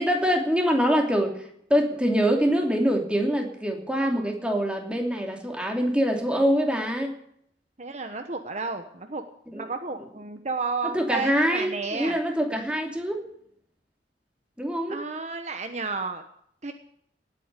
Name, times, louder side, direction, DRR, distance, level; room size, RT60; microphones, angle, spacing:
voice 1, 0.0-7.2 9.5-9.6 10.9-13.2 14.6-15.0, equal, 5° right, 2 dB, 2.8 m, -24 dB
voice 2, 7.8-9.2 9.5-12.2 14.9-16.2 16.6-16.7, right 4 dB, 40° right, 7 dB, 1.1 m, -32 dB
18.5 x 8.7 x 8.3 m, 0.68 s
head